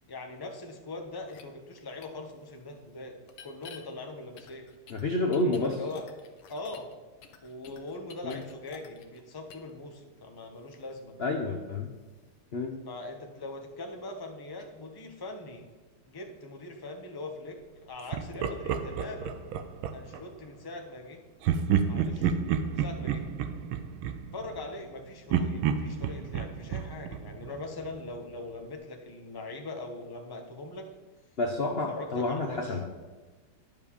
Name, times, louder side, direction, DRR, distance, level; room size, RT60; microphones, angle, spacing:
voice 1, 0.1-3.2 3.4-4.6 5.6-6.0 6.5-6.9 7.4-11.1 12.9-15.7 16.0-19.4 19.9-21.2 21.9-22.3 22.8-23.2 24.3-30.9 31.7-32.8, left 2 dB, 20° left, 3 dB, 0.6 m, -41 dB
sound 1, 1.3-1.4 2.0-2.1 3.3-3.8 4.4-6.9 7.2-9.2 9.5-9.7, left 7 dB, 80° left, 1.8 m, -49 dB
voice 2, 4.9-5.7 8.2-8.4 11.2-11.9 12.5-12.8 31.4-32.9, left 2 dB, 65° left, 2 dB, 0.6 m, -29 dB
Laughter, 18.1-20.2 21.4-24.9 25.3-28.1, right 7 dB, 70° right, 1.5 m, -30 dB
11.0 x 5.4 x 7.0 m, 1.3 s
omnidirectional pair, 2.4 m